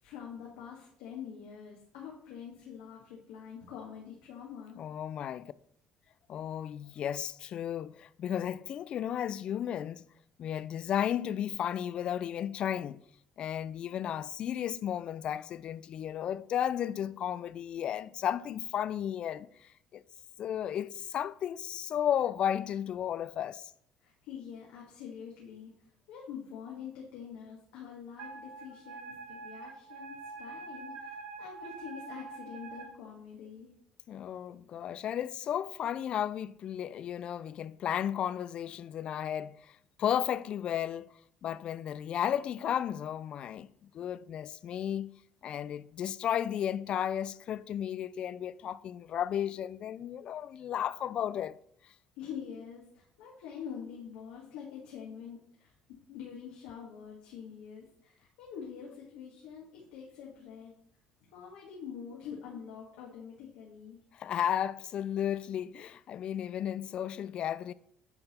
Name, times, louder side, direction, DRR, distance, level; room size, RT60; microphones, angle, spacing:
voice 1, 0.0-4.8 24.0-25.7 26.1-33.7 52.1-55.7 56.1-60.7 61.3-64.0, left 7 dB, 85° left, 1.5 m, -45 dB
voice 2, 4.8-5.5 6.3-10.0 10.4-13.0 13.4-20.0 20.4-23.6 34.1-41.1 41.4-45.1 45.4-51.6 64.1-67.7, left 10 dB, 55° left, 0.3 m, -34 dB
Wind instrument woodwind instrument, 28.2-32.9, right 4 dB, 75° right, 1.6 m, -45 dB
8.7 x 4.1 x 4.2 m
supercardioid pair, 95°, 2 cm